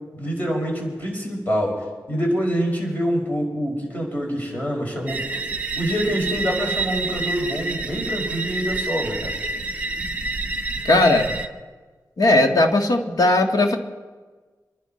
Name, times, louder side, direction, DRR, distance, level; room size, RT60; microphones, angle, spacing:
voice 1, 0.1-5.4 5.8-9.3, equal, 25° left, -1 dB, 5.3 m, -26 dB
sound 1, 5.1-11.5, right 2 dB, 20° right, 1.3 m, -28 dB
voice 2, 10.8-11.3 12.2-13.8, left 2 dB, 60° left, 4 dB, 1.8 m, -17 dB
26.0 x 11.5 x 4.3 m, 1.3 s
wide cardioid pair, 85°, 7 cm